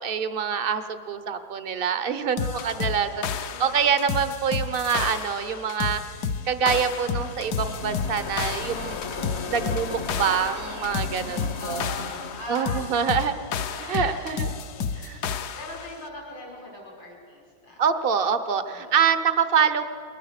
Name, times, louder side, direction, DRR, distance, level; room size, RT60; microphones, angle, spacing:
voice 1, 0.0-6.0 6.4-9.0 9.5-11.8 12.5-13.3 13.8-14.6 15.0-15.2 17.8-19.9, right 7 dB, 40° right, 10 dB, 0.8 m, -25 dB
voice 2, 2.4-4.2 9.0-9.5 11.6-12.9 13.2-13.3 13.7-15.1 15.5-17.8 18.7-19.1, left 1 dB, 85° left, -2 dB, 6.1 m, -42 dB
sound 1, 2.4-15.9, left 6 dB, 65° left, 1.3 m, -31 dB
sound 2, 6.1-14.2, left 4 dB, 45° left, 1.1 m, -37 dB
22.0 x 19.0 x 6.6 m, 2.2 s
omnidirectional pair, 2.0 m